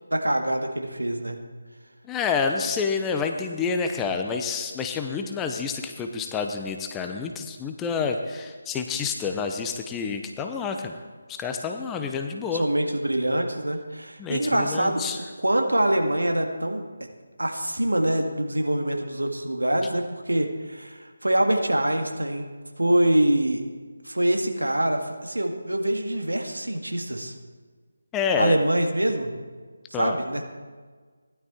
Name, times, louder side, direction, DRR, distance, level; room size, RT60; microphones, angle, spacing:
voice 1, 0.1-1.4 12.5-15.0 15.4-16.8 17.4-22.5 22.8-23.6 24.0-27.3 28.4-29.3 29.9-30.4, right 1 dB, 80° right, 3 dB, 2.0 m, -24 dB
voice 2, 2.1-11.0 11.3-12.7 14.2-15.2 28.1-28.6 29.9-30.2, left 5 dB, 10° left, 4 dB, 0.7 m, -28 dB
16.0 x 11.5 x 4.4 m, 1.5 s
figure-of-eight pair, 155°, 0 cm